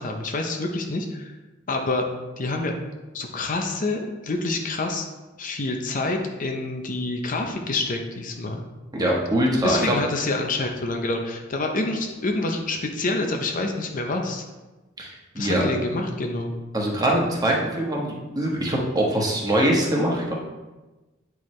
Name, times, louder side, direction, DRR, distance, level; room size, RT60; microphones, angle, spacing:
voice 1, 0.0-1.3 1.7-2.1 2.4-2.7 3.1-5.1 5.4-8.6 9.6-14.4 15.4-16.5, left 2 dB, 45° left, 3 dB, 0.6 m, -27 dB
voice 2, 8.9-9.9 15.0-15.7 16.7-20.3, right 1 dB, 20° right, -3 dB, 1.2 m, -23 dB
8.5 x 4.6 x 3.2 m, 1.1 s
head